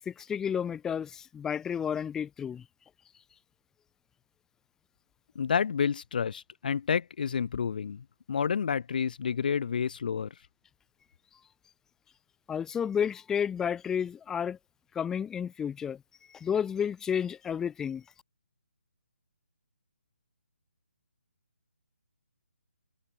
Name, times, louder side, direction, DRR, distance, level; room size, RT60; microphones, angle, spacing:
voice 1, 0.1-2.6 12.5-14.6 14.9-16.0 16.3-18.0, left 8 dB, 10° left, 7.6 m, -31 dB
voice 2, 5.4-10.3, left 6 dB, 45° left, 7.3 m, -29 dB
figure-of-eight pair, 145°, 7 cm